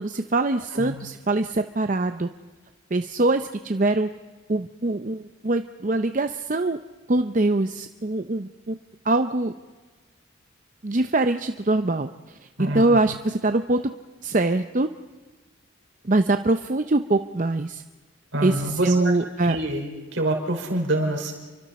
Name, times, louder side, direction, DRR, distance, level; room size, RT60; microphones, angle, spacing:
voice 1, 0.0-2.3 2.9-4.1 4.5-6.8 7.1-8.7 9.0-9.5 10.8-12.4 12.7-13.8 14.2-14.9 16.0-17.8 18.4-19.6, right 2 dB, 40° right, 8 dB, 0.6 m, -23 dB
voice 2, 12.6-13.0 18.3-19.1 19.4-21.3, right 1 dB, 65° right, 1 dB, 5.0 m, -26 dB
30.0 x 24.5 x 4.3 m, 1.3 s
head